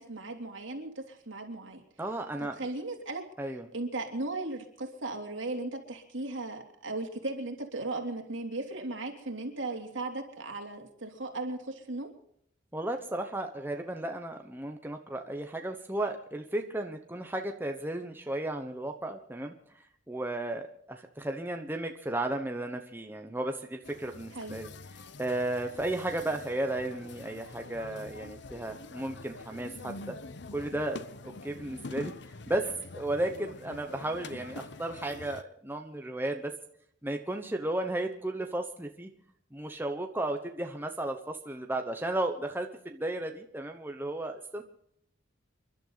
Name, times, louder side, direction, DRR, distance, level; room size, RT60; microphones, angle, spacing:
voice 1, 0.0-1.8 2.4-3.2 3.7-12.1 24.3-24.6, right 2 dB, 70° right, 2 dB, 3.2 m, -37 dB
voice 2, 2.0-2.7 3.4-3.7 12.7-19.5 20.1-24.7 25.2-30.1 30.5-31.0 31.2-32.1 32.5-36.5 37.0-39.1 39.5-44.6, right 1 dB, 10° right, 4 dB, 1.0 m, -34 dB
sound 1, 23.8-35.4, left 3 dB, 60° left, 0.8 m, -45 dB
29.0 x 11.5 x 4.0 m, 0.70 s
head